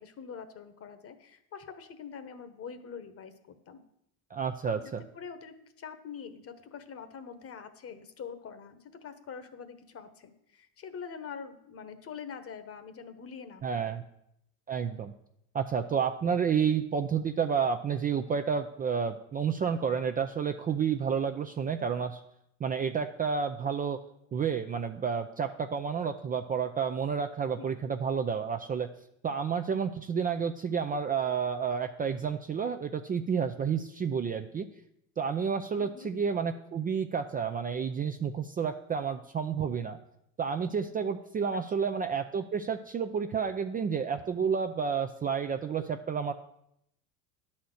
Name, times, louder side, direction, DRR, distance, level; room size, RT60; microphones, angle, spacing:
voice 1, 0.0-3.8 4.7-4.8 5.1-14.0 27.6-27.8 35.8-36.1 41.5-41.9, left 6 dB, 35° left, 10 dB, 1.1 m, -45 dB
voice 2, 4.3-5.0 13.6-14.0 14.7-15.1 15.5-22.2 22.6-24.0 24.3-28.9 29.2-34.7 35.2-40.0 40.4-46.3, right 6 dB, 20° right, 6 dB, 0.4 m, -30 dB
10.0 x 4.3 x 7.8 m, 0.77 s
supercardioid pair, 95°, 40 cm